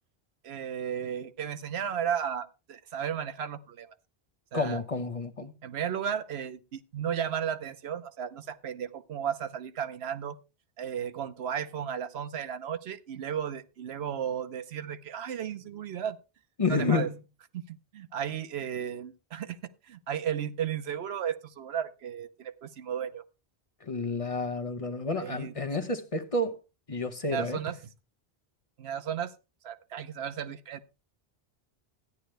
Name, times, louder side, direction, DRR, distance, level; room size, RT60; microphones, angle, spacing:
voice 1, 0.4-3.9 4.5-4.8 5.6-10.4 10.8-16.2 16.7-17.1 17.5-19.6 19.9-23.2 25.2-25.5 27.3-27.8 28.8-29.3 29.6-30.8, right 8 dB, 75° right, 1.0 m, -34 dB
voice 2, 4.5-5.5 16.6-17.1 23.9-26.6 26.9-27.6, left 3 dB, 35° left, 0.9 m, -30 dB
13.0 x 10.0 x 3.2 m
omnidirectional pair, 1.1 m